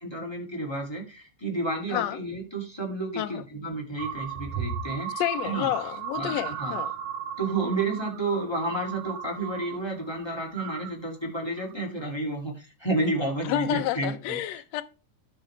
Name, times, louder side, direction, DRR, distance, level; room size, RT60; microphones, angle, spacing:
voice 1, 0.0-5.7 6.2-6.8 7.4-14.6, right 2 dB, 10° left, 1.9 m, -31 dB
sound 1, 4.0-9.8 10.1-10.9 11.4-11.7, right 8 dB, 75° right, 1.9 m, -36 dB
voice 2, 5.2-6.9 13.4-14.8, left 14 dB, 75° left, 1.6 m, -29 dB
12.5 x 5.7 x 3.3 m
omnidirectional pair, 3.7 m